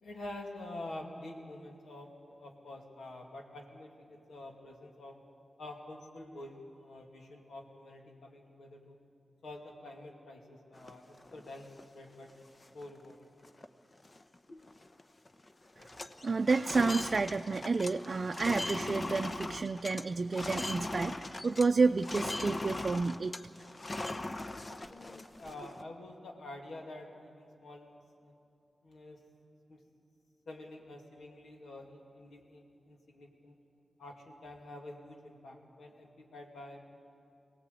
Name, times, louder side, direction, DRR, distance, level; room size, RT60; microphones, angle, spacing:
voice 1, 0.0-5.2 5.6-9.0 9.4-12.3 12.7-13.3 24.6-28.3 28.8-29.2 29.7-29.8 30.5-33.6 34.0-36.8, left 1 dB, 85° left, 1 dB, 2.6 m, -48 dB
sound 1, 10.8-11.8 12.3-12.4 12.6-13.0 13.4-13.7 13.9-15.0 15.3-15.5 15.8-21.7 22.0-25.8, left 2 dB, 40° left, 1.0 m, -39 dB
voice 2, 16.2-23.3, right 4 dB, 55° right, 6 dB, 0.5 m, -30 dB
23.0 x 17.5 x 8.3 m, 2.5 s
cardioid pair, 50°, 0 cm